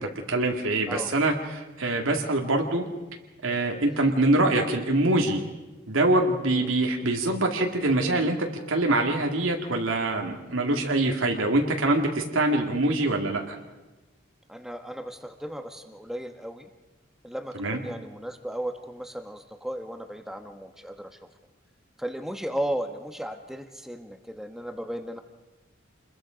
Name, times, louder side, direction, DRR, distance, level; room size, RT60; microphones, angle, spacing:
voice 1, 0.3-2.8 3.4-5.4 5.9-8.4 8.7-13.6 17.6-17.8, right 2 dB, 90° right, 2 dB, 2.3 m, -24 dB
voice 2, 14.5-16.7 17.2-21.2 22.0-25.2, equal, ahead, 6 dB, 1.3 m, -35 dB
28.0 x 21.5 x 5.2 m, 1.1 s
head